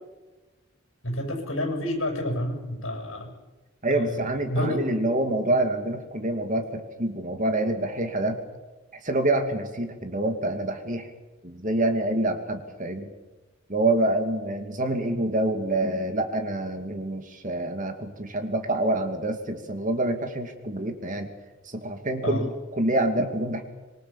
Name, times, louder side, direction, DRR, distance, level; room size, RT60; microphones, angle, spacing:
voice 1, 1.0-3.3 3.9-4.8 22.2-22.5, left 1 dB, 65° left, 3 dB, 7.8 m, -29 dB
voice 2, 3.8-8.4 9.0-11.1 11.4-13.1 13.7-21.3 21.6-23.6, right 1 dB, 40° right, 6 dB, 2.6 m, -26 dB
26.0 x 23.0 x 7.3 m, 1.2 s
head